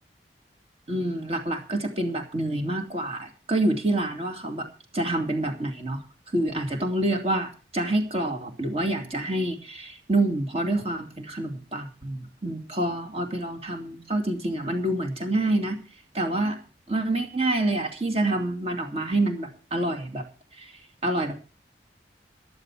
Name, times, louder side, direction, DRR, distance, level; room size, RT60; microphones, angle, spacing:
voice 1, 0.9-4.7 4.9-6.0 6.3-15.8 16.1-16.6 16.9-20.2 20.6-20.7 21.0-21.3, right 1 dB, 35° right, 5 dB, 2.5 m, -27 dB
14.5 x 11.5 x 4.7 m, 0.35 s
head